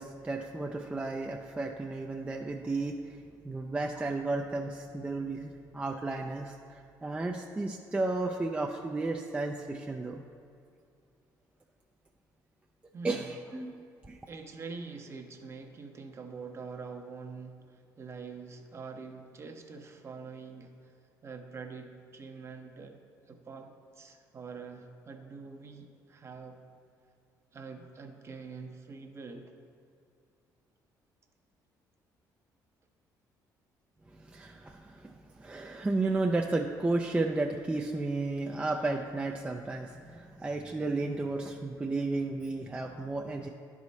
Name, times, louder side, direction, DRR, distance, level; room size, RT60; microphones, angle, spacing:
voice 1, 0.0-10.2 13.0-14.2 34.1-43.5, right 2 dB, 15° right, 2 dB, 0.4 m, -33 dB
voice 2, 12.9-13.3 14.3-20.9 21.2-23.0 23.3-26.6 27.5-29.5, right 4 dB, 35° right, 5 dB, 0.8 m, -45 dB
10.5 x 4.9 x 4.1 m, 2.5 s
cardioid pair, 95°, 8 cm